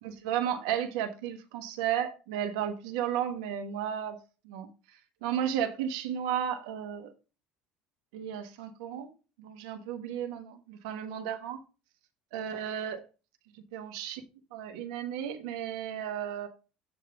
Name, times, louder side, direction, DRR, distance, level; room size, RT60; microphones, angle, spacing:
voice 1, 0.0-4.2 4.4-4.7 5.2-7.1 8.1-9.1 9.4-11.6 12.3-13.0 13.7-14.2 14.5-16.5, right 9 dB, 80° right, 1.4 m, -33 dB
8.5 x 3.3 x 5.7 m
hypercardioid pair, 80°, 3 cm